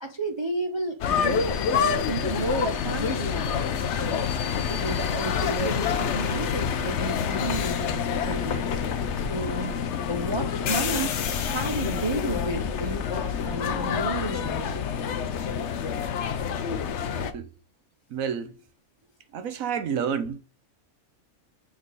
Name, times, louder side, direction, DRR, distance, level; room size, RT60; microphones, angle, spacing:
voice 1, 0.0-3.6 4.0-4.3 4.7-8.7 9.2-9.7 10.1-14.8, right 2 dB, 30° right, 0.5 m, -32 dB
sound 1, 1.0-17.3, left 7 dB, 60° left, 0.9 m, -27 dB
voice 2, 18.1-18.6 19.3-20.4, right 7 dB, 70° right, 1.3 m, -29 dB
6.5 x 3.6 x 4.0 m
omnidirectional pair, 1.5 m